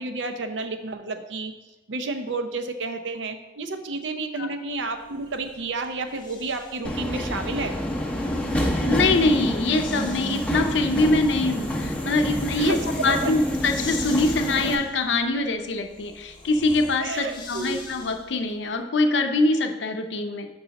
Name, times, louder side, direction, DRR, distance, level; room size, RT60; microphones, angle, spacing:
voice 1, 0.0-1.5 1.9-7.8 12.6-13.3 17.0-17.9, right 3 dB, 85° right, 7 dB, 0.6 m, -31 dB
Breathing, 5.0-6.9 8.2-18.5, left 3 dB, 25° left, 1.1 m, -43 dB
Subway metro underground, 6.8-14.7, equal, 5° left, 0.6 m, -28 dB
voice 2, 8.8-20.5, left 2 dB, 75° left, 6 dB, 0.6 m, -24 dB
5.4 x 4.0 x 5.7 m, 1.1 s
head